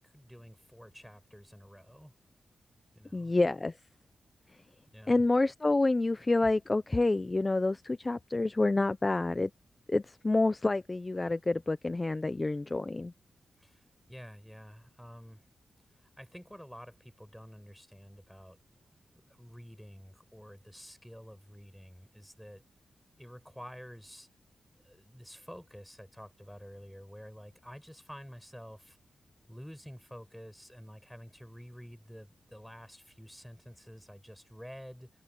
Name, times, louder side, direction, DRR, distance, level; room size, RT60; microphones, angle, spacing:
voice 1, 0.0-2.1 3.0-3.3 4.9-5.2 13.6-15.4 16.0-18.6 19.4-22.6 23.2-24.3 24.8-29.0 29.5-35.1, equal, ahead, 5.9 m, -49 dB
voice 2, 3.1-3.8 5.1-9.5 9.9-13.1, left 2 dB, 25° left, 0.6 m, -28 dB
wide cardioid pair, 115°, 0 cm